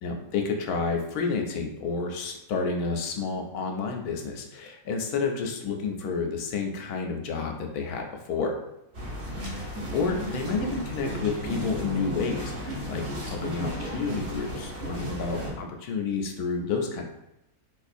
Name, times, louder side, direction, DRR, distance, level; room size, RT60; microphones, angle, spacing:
voice 1, 0.0-8.5 9.5-17.0, left 4 dB, 80° left, 3 dB, 1.1 m, -30 dB
sound 1, 8.9-15.5, equal, 45° right, 0.9 m, -34 dB
3.9 x 2.4 x 2.5 m, 0.91 s
omnidirectional pair, 1.6 m